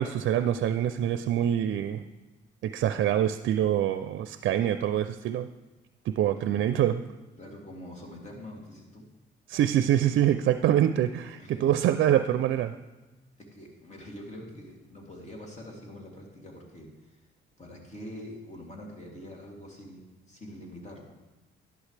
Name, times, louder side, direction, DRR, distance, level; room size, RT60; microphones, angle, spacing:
voice 1, 0.0-2.0 2.6-5.5 6.1-7.0 9.5-12.8, right 11 dB, 70° right, 11 dB, 0.5 m, -25 dB
voice 2, 7.4-9.0 11.4-11.8 13.4-17.2 17.6-21.0, left 1 dB, 35° left, -1 dB, 2.8 m, -44 dB
11.5 x 11.0 x 3.3 m, 1.1 s
cardioid pair, 90°, 20 cm